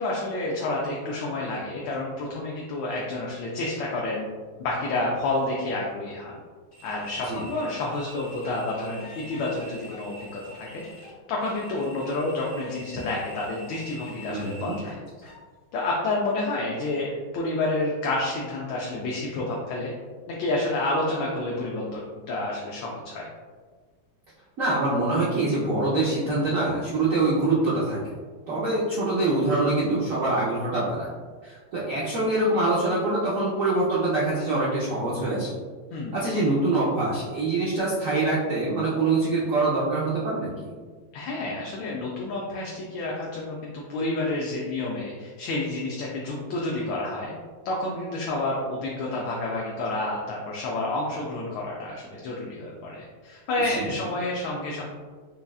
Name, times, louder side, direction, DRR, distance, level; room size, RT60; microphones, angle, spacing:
voice 1, 0.0-4.3 4.6-6.3 6.8-10.8 11.3-15.0 15.7-19.9 20.3-23.3 35.9-36.2 41.1-47.3 47.6-54.8, left 2 dB, 75° left, -3 dB, 1.2 m, -29 dB
sound 1, 6.7-15.4, equal, 45° left, 1.3 m, -46 dB
voice 2, 14.3-14.8 24.6-28.1 28.5-31.1 31.4-35.5 36.1-40.7 53.6-53.9, right 2 dB, 70° right, -7 dB, 0.7 m, -25 dB
5.3 x 2.3 x 2.3 m, 1.5 s
omnidirectional pair, 2.3 m